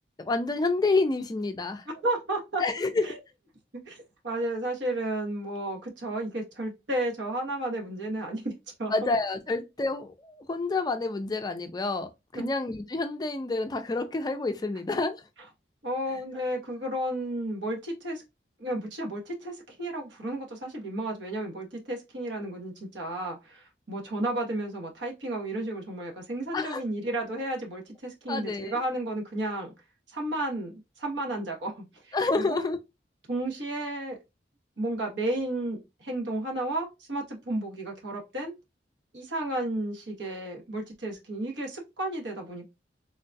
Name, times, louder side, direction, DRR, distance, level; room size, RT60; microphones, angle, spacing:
voice 1, 0.2-1.8 2.6-3.1 8.9-15.2 16.1-16.2 26.5-26.8 28.3-28.8 32.1-32.8, left 3 dB, 20° left, 0.3 m, -28 dB
voice 2, 2.0-3.2 3.9-8.5 8.8-8.9 12.3-12.5 15.8-18.2 18.6-29.7 30.1-32.6 33.3-34.2 34.8-38.5 39.1-42.7, right 1 dB, 85° right, 1.1 m, -32 dB
3.7 x 2.3 x 2.6 m
head